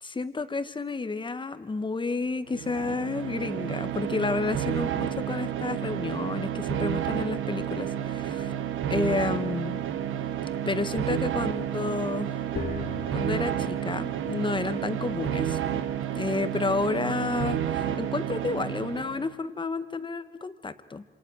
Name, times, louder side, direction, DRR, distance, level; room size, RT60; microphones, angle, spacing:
voice 1, 0.0-8.5 8.9-9.8 10.6-12.4 13.1-15.6 16.1-21.0, left 3 dB, 25° left, 11 dB, 1.6 m, -31 dB
sound 1, 2.5-19.3, right 10 dB, 80° right, 1.4 m, -30 dB
sound 2, 12.5-19.3, left 6 dB, 50° left, 1.9 m, -44 dB
27.5 x 27.0 x 6.5 m, 1.3 s
cardioid pair, 90°, 20 cm